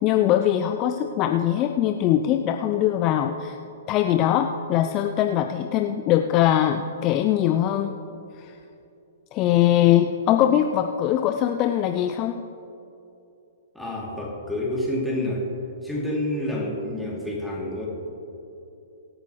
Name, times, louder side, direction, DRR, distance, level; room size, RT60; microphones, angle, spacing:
voice 1, 0.0-3.6 3.9-7.9 9.3-12.4, left 11 dB, 30° left, 5 dB, 0.5 m, -21 dB
voice 2, 13.7-15.4 15.8-17.9, left 1 dB, ahead, -5 dB, 2.9 m, -28 dB
23.5 x 9.0 x 3.2 m, 2.8 s
figure-of-eight pair, 115°, 0 cm